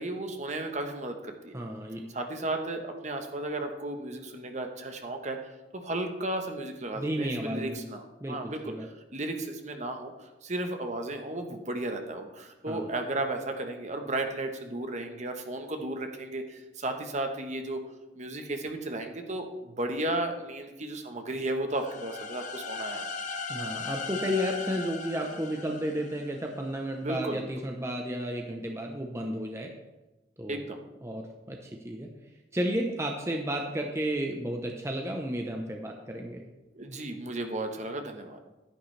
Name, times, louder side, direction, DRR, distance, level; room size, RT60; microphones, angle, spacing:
voice 1, 0.0-1.6 2.1-5.4 5.7-17.8 18.1-23.1 27.0-27.5 30.5-30.8 36.7-38.4, right 2 dB, 40° right, 5 dB, 1.1 m, -34 dB
voice 2, 1.5-2.0 6.9-7.8 8.2-8.9 12.7-12.9 23.5-29.7 30.4-30.6 31.0-32.1 32.5-36.4, equal, 15° right, 2 dB, 0.8 m, -32 dB
sound 1, 21.7-26.6, left 4 dB, 45° left, 0.8 m, -38 dB
11.5 x 10.0 x 3.3 m, 1.0 s
head